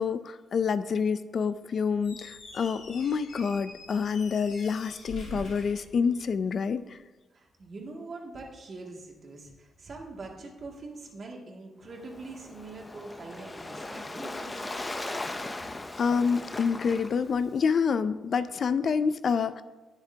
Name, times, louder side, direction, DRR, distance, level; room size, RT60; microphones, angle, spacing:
voice 1, 0.0-7.0 15.5-19.6, left 6 dB, 55° left, 13 dB, 0.4 m, -28 dB
Squeak, 1.9-6.6, equal, 75° left, 3.5 m, -45 dB
voice 2, 7.3-14.8, right 3 dB, 45° right, -1 dB, 2.3 m, -43 dB
Waves surf, 11.9-17.6, left 2 dB, 20° left, 0.7 m, -38 dB
19.0 x 6.8 x 2.8 m, 1.2 s
cardioid pair, 115°, 0 cm